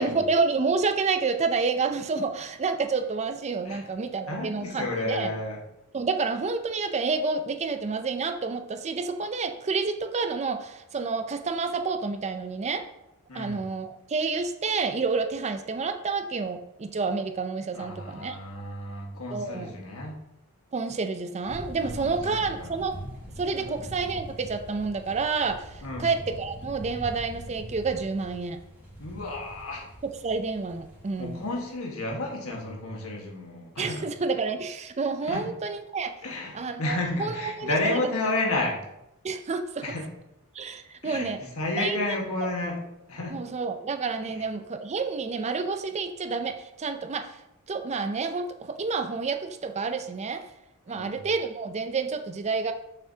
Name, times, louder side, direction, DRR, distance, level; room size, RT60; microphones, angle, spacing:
voice 1, 0.0-5.3 5.9-12.8 13.3-18.4 19.3-19.7 20.7-22.9 23.4-28.6 30.2-31.4 33.8-36.1 36.5-38.0 39.2-39.8 40.5-41.4 41.8-42.1 43.3-47.4 47.7-50.4 50.9-52.7, right 4 dB, 30° right, 7 dB, 0.4 m, -29 dB
voice 2, 4.3-5.6 13.3-13.6 17.7-20.2 21.8-22.7 23.6-23.7 25.8-26.1 29.0-29.8 31.2-34.0 35.3-35.4 36.2-38.7 39.8-40.1 41.0-41.3 41.6-42.8 43.1-43.4 44.2-44.3 50.9-51.2, left 2 dB, 70° left, -1 dB, 1.5 m, -31 dB
sound 1, 21.4-31.7, equal, 10° right, 2.1 m, -42 dB
6.8 x 5.8 x 2.8 m, 0.87 s
head